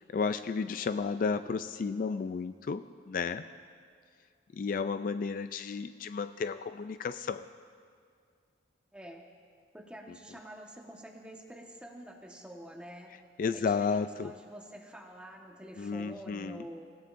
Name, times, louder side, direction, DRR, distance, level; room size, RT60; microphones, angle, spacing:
voice 1, 0.1-3.5 4.5-7.5 13.4-14.3 15.8-16.6, left 5 dB, 50° left, 11 dB, 0.3 m, -32 dB
voice 2, 8.9-9.3 9.7-13.1 13.5-16.9, equal, 5° right, 1 dB, 1.3 m, -47 dB
27.5 x 16.5 x 2.6 m, 2.2 s
head